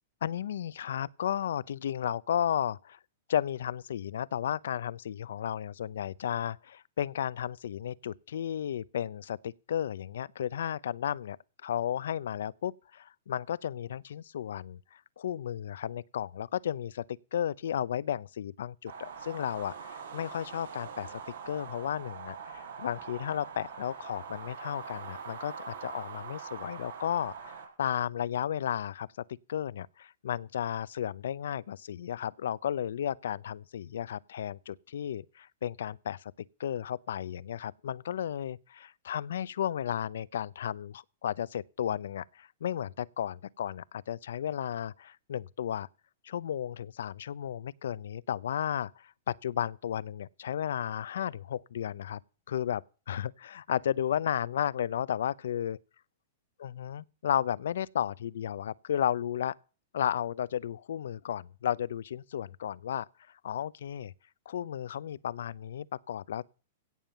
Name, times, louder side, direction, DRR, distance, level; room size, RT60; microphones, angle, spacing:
voice 1, 0.2-3.0 3.3-11.4 11.6-17.0 17.3-21.2 21.4-29.1 29.5-36.3 36.6-45.9 46.2-52.2 52.5-52.8 53.1-55.8 56.6-59.5 59.9-63.1 63.4-64.1 64.5-66.4, left 10 dB, 80° left, 0.6 m, -33 dB
sound 1, 18.9-27.7, right 6 dB, 85° right, 5.8 m, -43 dB
17.0 x 7.2 x 6.8 m
hypercardioid pair, 135°, 0 cm